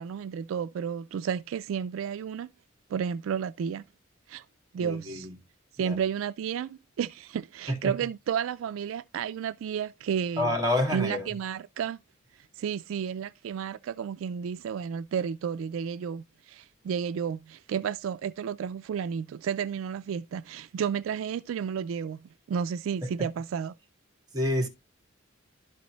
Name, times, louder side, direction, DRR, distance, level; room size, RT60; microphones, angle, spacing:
voice 1, 0.0-2.5 2.9-3.8 4.3-4.4 4.7-5.3 5.7-10.6 10.9-12.0 12.6-23.7, right 7 dB, 75° right, 0.3 m, -32 dB
voice 2, 4.8-5.3 5.8-6.0 7.8-7.9 10.4-11.3 24.3-24.7, left 1 dB, 20° right, 2.0 m, -28 dB
12.0 x 4.1 x 3.0 m
head